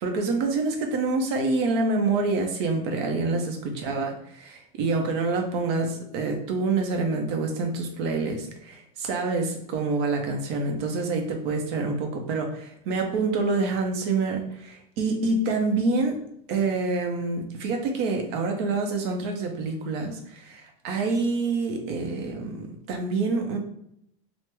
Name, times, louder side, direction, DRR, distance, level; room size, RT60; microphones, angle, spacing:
voice 1, 0.0-16.2 16.5-23.6, right 3 dB, 45° right, 3 dB, 0.6 m, -27 dB
3.3 x 2.0 x 3.1 m, 0.72 s
supercardioid pair, 170°, 18 cm